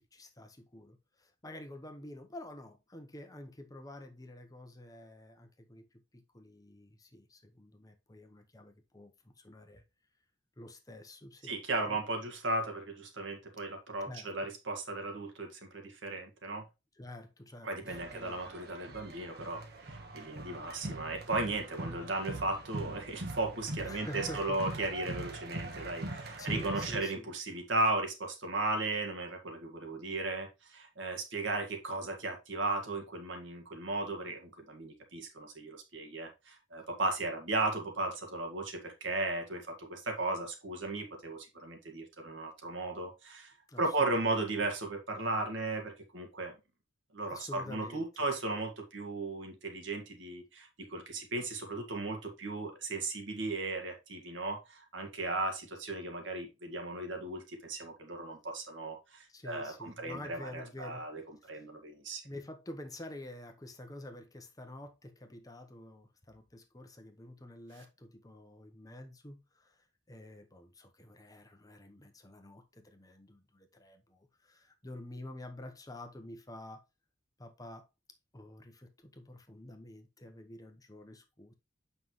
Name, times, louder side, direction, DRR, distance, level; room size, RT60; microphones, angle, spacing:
voice 1, 0.0-5.9 6.1-9.8 10.6-11.6 11.8-12.0 14.1-14.3 16.9-18.4 23.8-24.6 25.8-27.3 43.7-44.5 47.3-48.1 51.1-51.2 59.3-61.1 61.4-61.6 62.2-76.8 77.4-77.8 78.3-81.5, left 1 dB, 20° left, 0.9 m, -49 dB
voice 2, 11.4-16.6 17.6-43.5 43.8-46.5 47.1-61.2 61.5-62.2, right 2 dB, 70° right, 1.9 m, -36 dB
soccer crowd, 17.9-27.0, right 2 dB, 55° right, 1.4 m, -42 dB
7.7 x 5.6 x 3.1 m
head